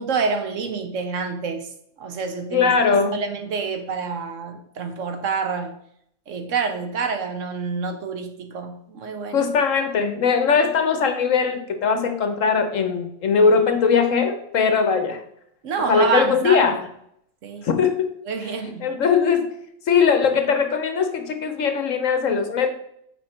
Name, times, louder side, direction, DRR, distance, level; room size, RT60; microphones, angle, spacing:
voice 1, 0.0-1.7 2.0-2.7 3.1-5.7 6.3-9.5 15.6-16.8 17.4-17.7 18.3-18.9, right 5 dB, 70° right, 7 dB, 1.1 m, -27 dB
voice 2, 2.5-3.2 9.3-15.2 15.9-16.8 17.6-18.1 18.8-19.5 19.9-22.7, left 5 dB, 70° left, 7 dB, 1.3 m, -20 dB
7.4 x 5.0 x 4.3 m, 0.71 s
omnidirectional pair, 1.4 m